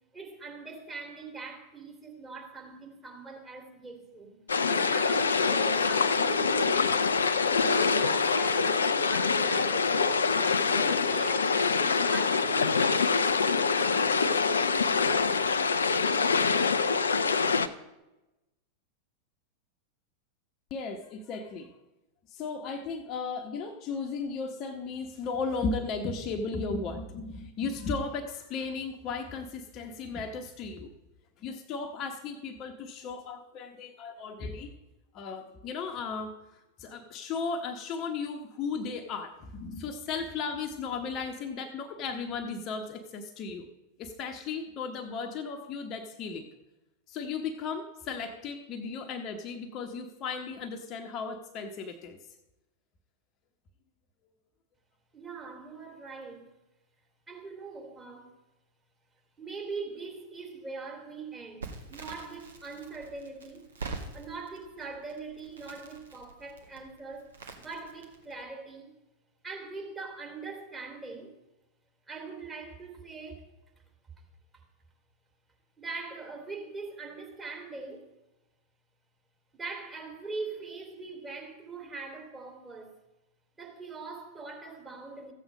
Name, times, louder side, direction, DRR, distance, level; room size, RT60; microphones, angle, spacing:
voice 1, 0.1-4.4 4.7-7.0 7.5-10.0 10.4-13.1 55.1-56.5 57.3-58.4 59.4-63.7 64.1-67.3 67.6-68.9 69.4-71.4 72.1-73.4 75.8-78.1 79.5-82.9 83.6-85.3, right 4 dB, 15° right, 2.5 m, -42 dB
sound 1, 4.5-17.7, left 5 dB, 70° left, 0.5 m, -25 dB
voice 2, 20.7-21.7 22.3-30.9 31.4-34.7 35.1-36.3 36.8-43.7 44.0-46.5 47.1-52.2, left 4 dB, 35° left, 1.0 m, -35 dB
Crackle, 61.6-68.4, right 4 dB, 70° right, 1.6 m, -45 dB
14.5 x 8.1 x 5.1 m
figure-of-eight pair, 90°, 0 cm